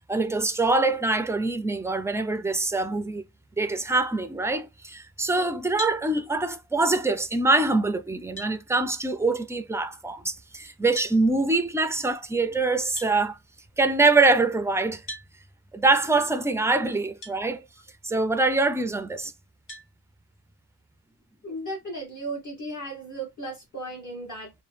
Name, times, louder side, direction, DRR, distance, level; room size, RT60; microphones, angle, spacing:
voice 1, 0.1-3.2 3.6-13.4 13.8-15.0 15.7-17.6 18.0-19.3, right 3 dB, 5° right, 0.3 m, -24 dB
sound 1, 5.8-6.0 7.7-7.8 8.4-8.6 10.9-11.2 13.0-13.1 15.1-15.3 17.2-17.4 18.0-18.1 19.7-19.9, equal, 70° left, 1.7 m, -37 dB
voice 2, 21.4-24.5, right 1 dB, 45° left, 1.1 m, -35 dB
2.9 x 2.1 x 3.2 m
cardioid pair, 95°, 42 cm